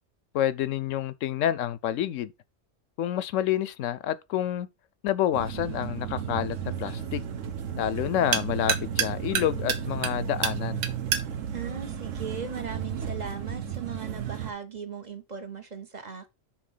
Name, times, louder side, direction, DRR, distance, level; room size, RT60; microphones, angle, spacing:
voice 1, 0.3-2.3 3.0-4.7 5.0-7.2 7.8-10.8, left 11 dB, 75° left, 0.9 m, -28 dB
sound 1, 5.2-12.9, right 8 dB, 90° right, 1.3 m, -33 dB
sound 2, 5.3-14.5, right 8 dB, 75° right, 1.2 m, -34 dB
voice 2, 11.5-16.3, right 6 dB, 35° right, 1.0 m, -38 dB
6.1 x 4.1 x 5.5 m
omnidirectional pair, 1.4 m